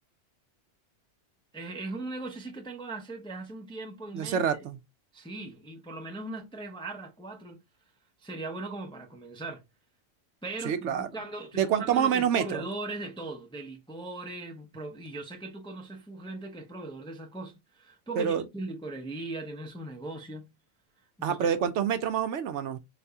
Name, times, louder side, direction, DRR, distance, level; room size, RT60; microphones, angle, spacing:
voice 1, 1.5-4.5 5.1-7.6 8.2-9.6 10.4-20.5 21.2-21.5, right 2 dB, 5° left, 0.4 m, -39 dB
voice 2, 4.1-4.8 10.6-11.1 11.6-12.6 18.2-18.4 21.2-22.8, right 8 dB, 70° right, 0.9 m, -27 dB
4.0 x 3.4 x 2.7 m
omnidirectional pair, 1.3 m